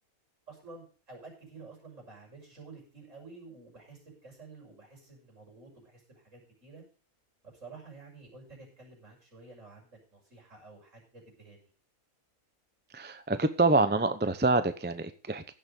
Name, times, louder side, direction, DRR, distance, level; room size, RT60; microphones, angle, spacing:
voice 1, 0.5-6.8 7.4-11.7, right 3 dB, 60° right, -1 dB, 6.6 m, -51 dB
voice 2, 12.9-15.5, right 2 dB, 10° right, 11 dB, 0.6 m, -26 dB
16.0 x 7.0 x 5.3 m, 0.38 s
omnidirectional pair, 1.5 m